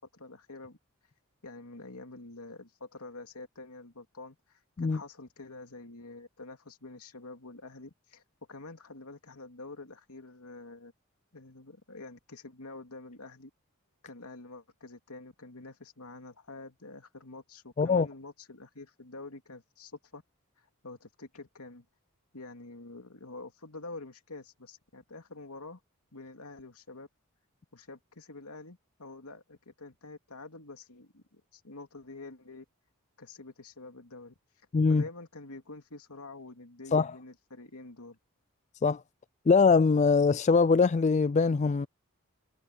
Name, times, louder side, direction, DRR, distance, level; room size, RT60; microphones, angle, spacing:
voice 1, 0.1-0.8 1.4-8.2 8.5-10.9 11.3-13.5 14.0-20.2 20.6-21.9 22.3-25.8 26.1-27.1 27.7-32.6 33.2-34.3 34.9-38.2, left 3 dB, 85° left, 2.8 m, -47 dB
voice 2, 34.7-35.0 36.9-37.1 38.8-39.0 39.5-41.9, left 4 dB, 30° left, 0.3 m, -22 dB
head